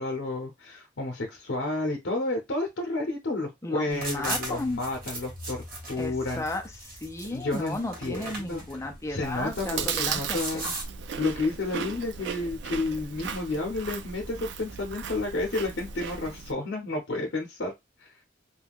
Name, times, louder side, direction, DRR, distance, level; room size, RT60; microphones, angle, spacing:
voice 1, 0.0-6.4 7.3-8.6 9.1-10.7 11.2-17.7 18.0-18.2, left 2 dB, 75° left, 0.7 m, -31 dB
voice 2, 3.6-4.8 6.0-10.6, left 2 dB, 15° left, 0.5 m, -34 dB
sound 1, 3.9-10.8, right 2 dB, 50° right, 1.1 m, -38 dB
Chewing mastication, 9.2-16.5, right 6 dB, 65° right, 0.4 m, -36 dB
2.3 x 2.2 x 3.4 m
head